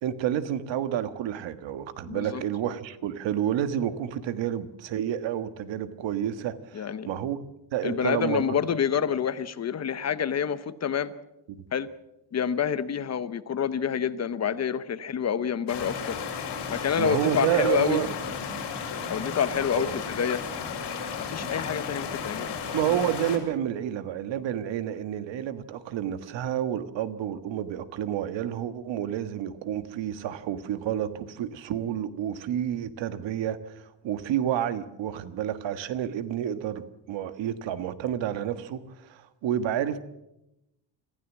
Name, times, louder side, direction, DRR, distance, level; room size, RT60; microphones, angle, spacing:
voice 1, 0.0-7.4 7.7-8.6 11.5-11.6 17.0-18.1 19.7-19.9 22.7-40.0, right 10 dB, 80° right, 12 dB, 1.6 m, -30 dB
voice 2, 2.1-2.4 6.7-7.1 7.8-11.1 11.7-11.9 12.3-16.2 16.7-18.0 19.1-20.4 21.2-22.5, left 8 dB, 35° left, 14 dB, 0.9 m, -28 dB
sound 1, 15.7-23.4, left 6 dB, 65° left, 5.6 m, -34 dB
25.5 x 15.5 x 7.3 m, 0.88 s
cardioid pair, 160°, 44 cm